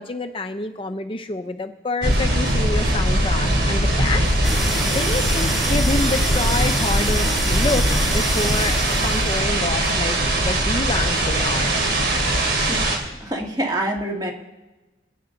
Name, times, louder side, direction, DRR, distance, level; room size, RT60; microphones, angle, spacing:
voice 1, 0.0-11.7, left 2 dB, 30° left, 7 dB, 0.6 m, -28 dB
sound 1, 2.0-13.0, right 1 dB, 75° right, 3.3 m, -21 dB
sound 2, 4.4-9.5, equal, ahead, 1.3 m, -28 dB
voice 2, 12.7-14.3, right 1 dB, 25° right, 1 dB, 1.9 m, -27 dB
27.5 x 9.3 x 3.8 m, 1.1 s
head